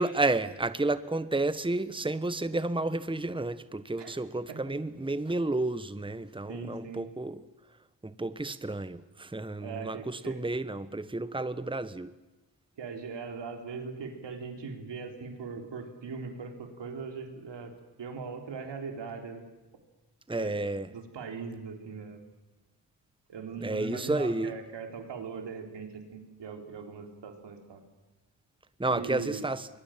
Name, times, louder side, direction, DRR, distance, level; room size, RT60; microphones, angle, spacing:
voice 1, 0.0-7.4 8.0-12.1 20.3-20.9 23.6-24.6 28.8-29.7, right 2 dB, 10° right, 1.3 m, -31 dB
voice 2, 6.5-7.0 9.6-10.4 12.8-17.7 18.0-19.4 20.4-20.6 20.9-22.2 23.3-27.8 28.9-29.4, right 5 dB, 85° right, 3.8 m, -40 dB
25.5 x 22.0 x 7.5 m
supercardioid pair, 40°, 41 cm